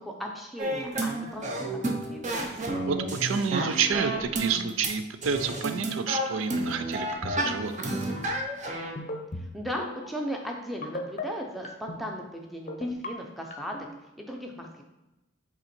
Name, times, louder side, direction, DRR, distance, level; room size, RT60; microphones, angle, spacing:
voice 1, 0.0-2.5 9.3-13.8 14.2-14.8, equal, ahead, 0 dB, 0.6 m, -37 dB
sound 1, 0.6-4.9 5.2-8.9, right 1 dB, 35° right, 0.7 m, -31 dB
voice 2, 2.9-7.9, right 6 dB, 80° right, 10 dB, 0.4 m, -29 dB
sound 2, 7.1-7.6 7.9-8.2 9.0-9.5 9.8-10.1 10.8-11.2 11.6-12.0 12.7-13.1 13.5-13.8, left 2 dB, 35° left, 0.6 m, -35 dB
5.6 x 3.9 x 4.4 m, 1.0 s
head